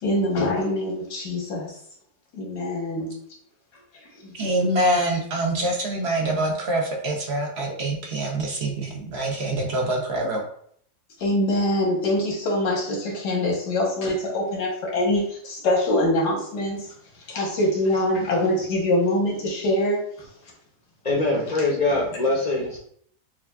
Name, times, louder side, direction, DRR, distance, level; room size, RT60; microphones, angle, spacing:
voice 1, 0.0-1.8 2.3-3.1 4.2-4.3 11.2-16.9 17.3-20.0 21.5-21.7, left 1 dB, 85° left, -2 dB, 1.6 m, -24 dB
voice 2, 4.3-10.4, right 1 dB, 60° right, 1 dB, 0.7 m, -25 dB
voice 3, 21.0-22.8, left 2 dB, 50° left, -2 dB, 0.5 m, -23 dB
5.8 x 2.4 x 2.2 m, 0.64 s
omnidirectional pair, 1.7 m